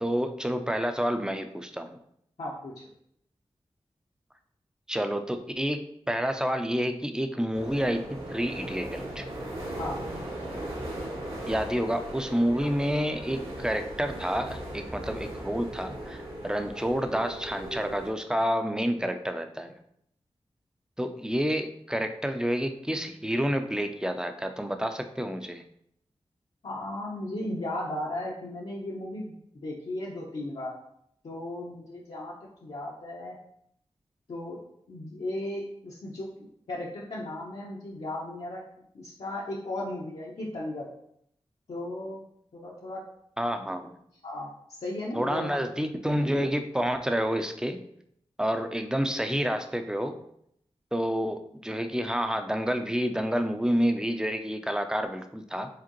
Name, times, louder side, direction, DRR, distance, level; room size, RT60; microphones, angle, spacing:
voice 1, 0.0-2.0 4.9-9.2 11.5-19.7 21.0-25.6 43.4-44.0 45.2-47.8 48.4-50.2 50.9-55.7, equal, 5° right, 7 dB, 0.5 m, -29 dB
voice 2, 2.4-2.8 9.8-10.0 26.6-30.7 31.2-32.3 32.6-33.4 34.3-34.6 34.9-38.6 38.9-40.9 41.7-42.2 42.5-43.0 44.2-45.5, left 1 dB, 70° left, -6 dB, 0.8 m, -36 dB
sound 1, 7.5-18.1, right 1 dB, 70° right, 1.9 m, -38 dB
4.9 x 3.6 x 3.0 m, 0.71 s
wide cardioid pair, 65°, 11 cm